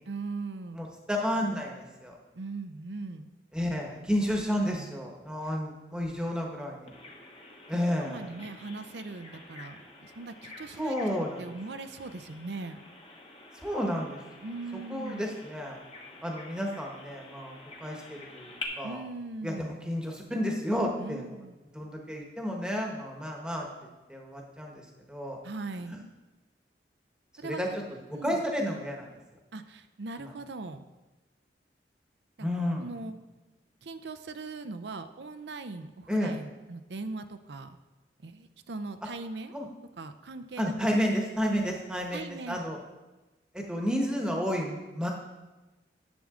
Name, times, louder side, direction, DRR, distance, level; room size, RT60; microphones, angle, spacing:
voice 1, 0.1-0.9 2.3-3.3 4.7-4.9 7.7-11.0 11.4-12.8 14.4-15.3 18.8-19.8 21.0-21.6 25.4-26.1 27.4-27.6 28.1-28.4 29.5-30.9 32.4-32.5 32.8-33.1 33.8-37.8 38.2-39.6 40.0-40.7 42.1-42.6, right 3 dB, 80° right, 10 dB, 0.6 m, -40 dB
voice 2, 0.7-2.1 3.5-6.9 7.7-8.3 10.8-11.5 13.6-14.2 14.9-15.8 16.2-19.0 19.4-21.3 21.7-23.7 24.1-25.4 25.9-26.0 27.4-29.1 30.2-30.3 32.4-32.9 36.1-36.4 39.5-39.7 40.6-42.8 43.5-45.1, equal, 5° right, 0 dB, 1.2 m, -31 dB
Bird vocalization bird call bird song, 6.9-18.6, left 3 dB, 30° left, 1.2 m, -48 dB
10.5 x 7.4 x 3.8 m, 1.1 s
head